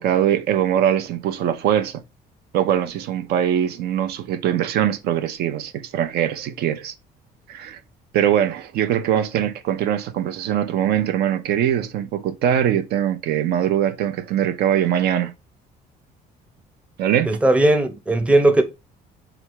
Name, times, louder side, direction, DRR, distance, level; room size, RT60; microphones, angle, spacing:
voice 1, 0.0-2.0 2.5-6.9 7.5-7.8 8.1-15.3 17.0-17.4, right 10 dB, 70° right, 0.5 m, -22 dB
voice 2, 17.3-18.6, right 1 dB, 5° right, 0.6 m, -17 dB
3.3 x 2.4 x 4.4 m
cardioid pair, 110°, 17 cm